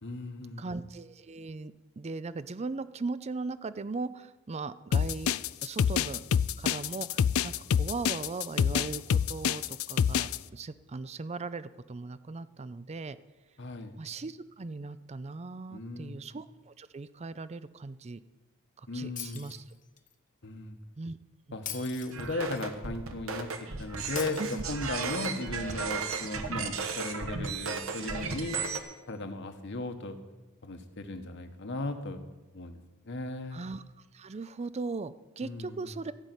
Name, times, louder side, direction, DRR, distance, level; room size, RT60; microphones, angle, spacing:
voice 1, 0.0-0.7 13.6-13.9 15.7-16.2 18.9-19.5 20.4-20.8 21.5-23.5 23.8-28.6 29.1-30.2 30.6-32.2 32.5-32.8 33.0-33.6 35.4-35.9, left 2 dB, 55° left, 7 dB, 1.2 m, -36 dB
voice 2, 0.6-6.2 6.6-13.2 14.0-18.2 18.9-19.6 21.0-21.2 21.5-21.6 24.4-24.6 33.5-33.8 34.1-36.1, right 3 dB, 30° right, 15 dB, 0.5 m, -38 dB
sound 1, 4.9-10.4, left 7 dB, 75° left, 0.4 m, -26 dB
Shatter, 19.2-20.1 21.7-22.7 24.2-25.1, left 9 dB, 35° left, 1.0 m, -42 dB
sound 2, 22.1-28.8, right 5 dB, 70° right, 1.3 m, -35 dB
15.0 x 5.7 x 9.2 m, 1.2 s
head